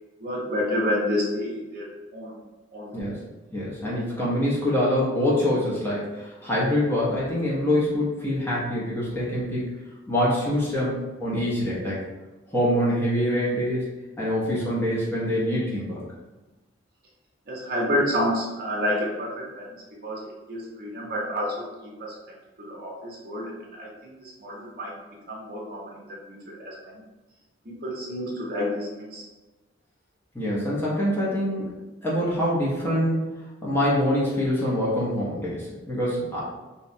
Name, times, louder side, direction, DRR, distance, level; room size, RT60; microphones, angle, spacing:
voice 1, 0.2-1.9 2.1-2.3 2.7-3.1 17.5-19.8 20.0-22.2 22.6-24.9 25.3-26.2 26.6-27.0 27.6-29.3, left 1 dB, 50° right, -3 dB, 0.6 m, -29 dB
voice 2, 3.5-9.7 10.1-12.0 12.5-13.9 14.2-16.0 30.3-31.7 32.0-33.2 33.6-36.4, equal, 10° left, -7 dB, 0.5 m, -25 dB
2.7 x 2.1 x 2.5 m, 1.2 s
head